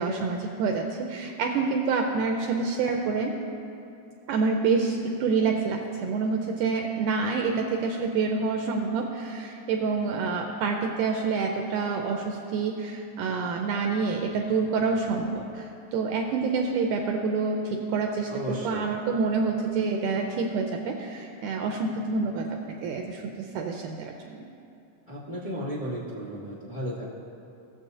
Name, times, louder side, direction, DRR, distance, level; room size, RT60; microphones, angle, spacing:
voice 1, 0.0-3.4 4.3-24.5, right 4 dB, 80° right, 2 dB, 1.8 m, -27 dB
voice 2, 18.3-18.9 25.1-27.0, equal, 40° left, -10 dB, 1.1 m, -34 dB
17.5 x 7.5 x 2.7 m, 2.7 s
omnidirectional pair, 4.0 m